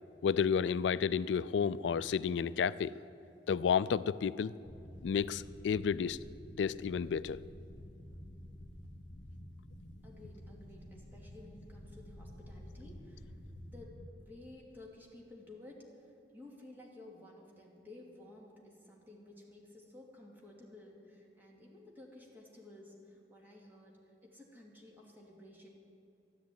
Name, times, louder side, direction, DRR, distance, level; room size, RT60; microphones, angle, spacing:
voice 1, 0.2-3.0 3.5-4.5 5.0-6.2 6.6-7.4, left 7 dB, 90° left, 17 dB, 0.3 m, -31 dB
sound 1, 4.6-14.1, equal, 50° left, 2.1 m, -50 dB
voice 2, 10.0-13.4 13.7-25.7, left 2 dB, 10° right, -2 dB, 2.7 m, -54 dB
13.0 x 10.0 x 9.4 m, 2.7 s
head